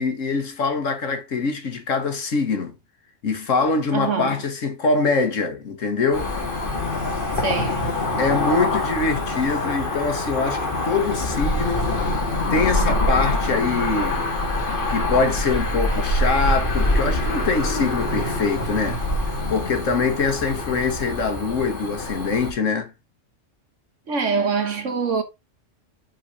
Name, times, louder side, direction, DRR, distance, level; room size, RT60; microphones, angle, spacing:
voice 1, 0.0-2.8 3.2-6.3 8.2-11.9 12.5-14.3 14.9-19.0 19.5-22.9, left 4 dB, 80° left, 1.6 m, -24 dB
voice 2, 3.9-4.4 7.4-7.9 24.1-25.2, right 5 dB, 70° right, 1.7 m, -24 dB
Cricket / Motor vehicle (road), 6.1-22.5, left 2 dB, 45° left, 1.9 m, -24 dB
6.5 x 4.0 x 4.6 m
omnidirectional pair, 1.3 m